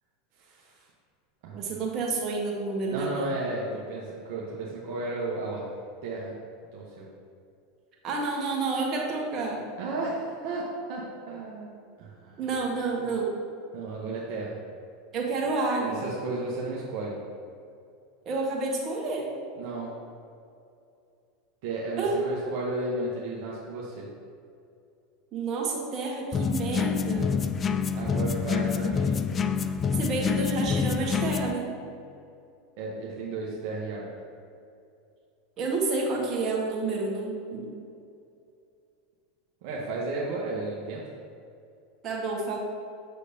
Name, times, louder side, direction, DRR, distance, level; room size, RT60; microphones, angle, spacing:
voice 1, 0.4-0.9 1.4-1.8 2.9-5.7 6.0-6.3 6.7-7.1 9.8-12.4 13.7-14.6 15.8-17.2 19.6-20.0 21.6-24.1 27.9-29.3 32.8-34.1 39.6-41.1, right 2 dB, 60° right, -4 dB, 1.0 m, -34 dB
voice 2, 1.5-3.3 8.0-9.6 12.4-13.3 15.1-16.0 18.2-19.3 22.0-22.2 25.3-27.3 30.0-31.7 35.6-37.7 42.0-42.6, right 3 dB, 40° right, -1 dB, 1.4 m, -29 dB
sound 1, 26.3-31.5, left 6 dB, 30° left, 0.3 m, -27 dB
6.4 x 6.4 x 2.8 m, 2.5 s
hypercardioid pair, 90°, 0 cm